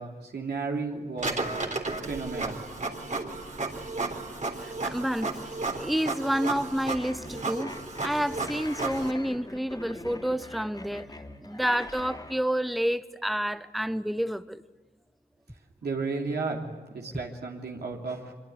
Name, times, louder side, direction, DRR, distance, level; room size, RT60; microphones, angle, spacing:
voice 1, 0.0-1.4 2.1-2.6 15.8-16.6 16.9-18.3, right 4 dB, 75° right, 3.2 m, -33 dB
Printer, 1.2-9.1, right 3 dB, 45° right, 3.5 m, -33 dB
voice 2, 4.6-7.7 8.0-11.1 11.4-14.6, equal, ahead, 1.0 m, -29 dB
sound 1, 6.9-12.4, left 2 dB, 25° left, 3.1 m, -43 dB
24.5 x 23.5 x 9.7 m
cardioid pair, 50°, 17 cm